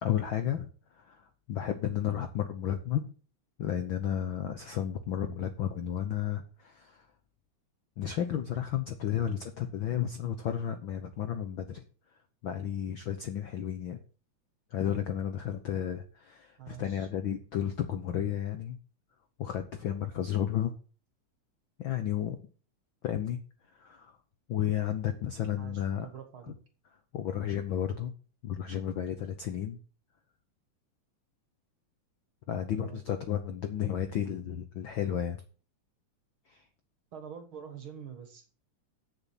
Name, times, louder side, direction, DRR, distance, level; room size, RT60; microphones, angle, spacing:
voice 1, 0.0-0.7 1.0-3.0 3.6-7.1 8.0-11.8 12.4-14.0 14.7-18.8 19.4-20.7 21.8-22.4 23.0-23.4 23.8-24.1 24.5-26.1 27.1-28.1 28.4-29.8 32.5-35.4 36.5-36.6, left 10 dB, 75° left, 8 dB, 1.1 m, -32 dB
voice 2, 16.6-17.1 25.6-26.5 32.8-33.0 37.1-38.5, right 8 dB, 50° right, 7 dB, 1.8 m, -45 dB
8.0 x 7.0 x 7.2 m, 0.38 s
omnidirectional pair, 3.5 m